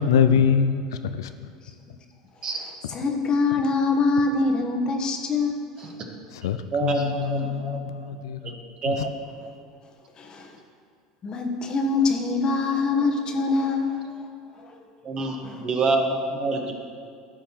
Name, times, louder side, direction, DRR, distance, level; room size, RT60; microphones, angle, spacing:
voice 1, 0.0-1.5 6.4-8.5 8.9-9.0, left 7 dB, 75° left, 9 dB, 0.3 m, -24 dB
voice 2, 2.5-5.9 10.2-10.6 11.2-14.3 14.6-14.8 15.4-15.5, left 3 dB, 35° left, 4 dB, 1.0 m, -24 dB
voice 3, 6.7-7.8 8.4-8.5 8.8-9.1 15.0-16.7, right 3 dB, 35° right, 2 dB, 1.2 m, -26 dB
13.5 x 5.3 x 2.9 m, 2.3 s
hypercardioid pair, 80°, 2 cm